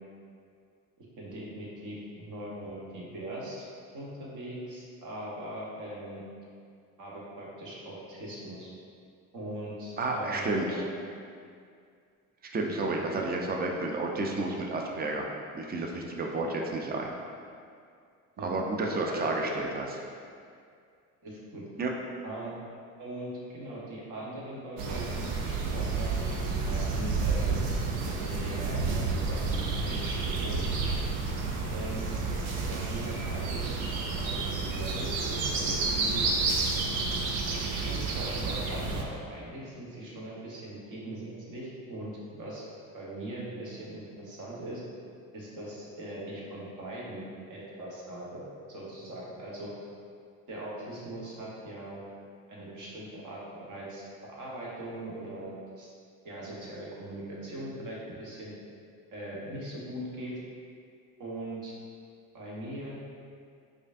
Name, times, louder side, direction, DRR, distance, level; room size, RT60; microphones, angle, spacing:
voice 1, 1.0-3.7 3.9-6.2 7.0-8.7 9.3-10.8 12.7-13.3 18.4-18.5 18.8-19.5 21.2-21.6 22.2-22.5 23.0-26.1 26.6-30.6 31.7-32.1 32.5-33.8 34.1-36.3 37.7-42.6 42.9-44.8 45.3-49.7 50.5-52.0 52.5-55.9 56.2-58.5 59.1-60.4 61.2-61.7 62.3-63.0, right 1 dB, 45° right, -5 dB, 1.2 m, -40 dB
voice 2, 10.0-10.8 12.5-15.3 15.5-17.1 18.4-19.9 21.8-21.9, right 2 dB, 25° right, 0 dB, 0.5 m, -31 dB
sound 1, 24.8-39.0, right 4 dB, 75° right, 0.6 m, -30 dB
4.8 x 2.5 x 2.6 m, 2.3 s
hypercardioid pair, 70°, 43 cm